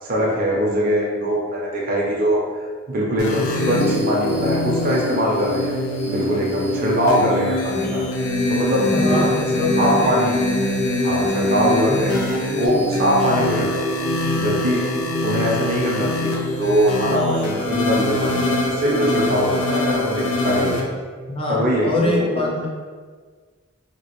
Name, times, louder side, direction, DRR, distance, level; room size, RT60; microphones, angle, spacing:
voice 1, 0.0-5.7 6.1-8.0 8.5-9.2 9.7-10.4 11.0-12.2 12.5-14.1 14.3-14.9 15.2-20.8 21.5-22.5, equal, 40° right, -3 dB, 0.5 m, -22 dB
sound 1, 3.2-20.8, left 1 dB, 75° left, 0.5 m, -23 dB
voice 2, 8.9-10.2 11.8-12.1 21.3-22.7, left 2 dB, 25° left, -2 dB, 0.4 m, -24 dB
2.9 x 2.4 x 2.9 m, 1.5 s
head